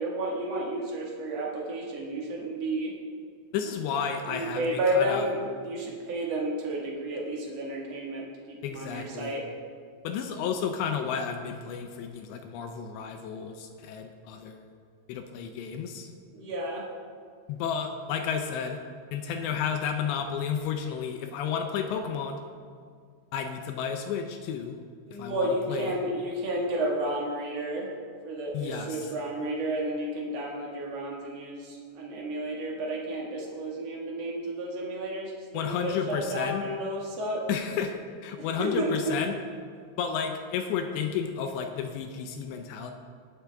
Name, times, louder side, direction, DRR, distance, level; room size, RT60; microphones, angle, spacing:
voice 1, 0.0-2.9 4.3-9.5 16.3-16.9 25.1-27.9 28.2-37.5 38.4-39.2, right 1 dB, 60° right, -2 dB, 1.7 m, -31 dB
voice 2, 3.5-4.7 4.9-5.3 8.6-9.4 10.0-14.6 15.1-16.1 17.5-18.8 19.1-22.4 23.3-24.8 25.2-25.9 28.5-29.0 35.5-36.7 37.5-38.0 38.2-39.4 40.0-42.9, left 7 dB, 80° left, 5 dB, 2.7 m, -32 dB
20.5 x 7.2 x 3.4 m, 2.1 s
omnidirectional pair, 5.4 m